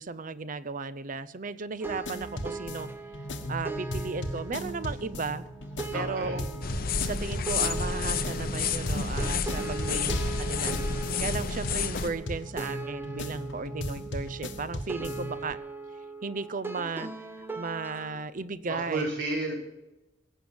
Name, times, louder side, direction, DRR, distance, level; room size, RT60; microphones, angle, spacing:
voice 1, 0.0-2.9 3.5-5.5 5.9-6.5 7.0-15.6 16.2-17.1 17.6-19.1, right 4 dB, 45° right, 15 dB, 0.7 m, -35 dB
sound 1, 1.8-18.3, right 3 dB, 10° right, 0.8 m, -40 dB
sound 2, 1.9-15.5, left 1 dB, 80° left, 1.4 m, -37 dB
voice 2, 5.9-6.4 9.6-10.1 18.7-19.5, right 2 dB, 70° right, -3 dB, 4.6 m, -33 dB
sound 3, 6.6-12.1, left 5 dB, 55° left, 0.8 m, -30 dB
17.0 x 7.2 x 7.7 m, 0.94 s
head